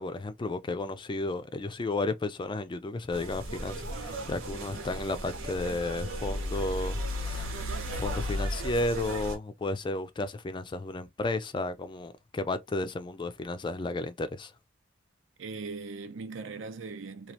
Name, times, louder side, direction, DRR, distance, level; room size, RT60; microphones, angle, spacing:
voice 1, 0.0-7.6 7.9-14.5, left 2 dB, 25° left, 0.3 m, -33 dB
sound 1, 3.1-9.4, equal, 85° right, 1.0 m, -35 dB
voice 2, 15.4-17.3, right 4 dB, 70° right, 0.5 m, -39 dB
3.1 x 2.3 x 2.8 m
head